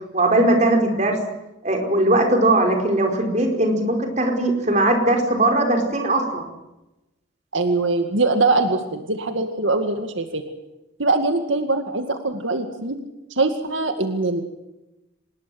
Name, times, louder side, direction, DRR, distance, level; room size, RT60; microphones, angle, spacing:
voice 1, 0.1-1.2 1.6-6.5, right 1 dB, 35° right, 4 dB, 4.9 m, -19 dB
voice 2, 7.5-10.4 11.0-13.0 13.4-14.4, right 3 dB, 80° right, 6 dB, 2.1 m, -22 dB
25.5 x 20.5 x 7.8 m, 0.97 s
head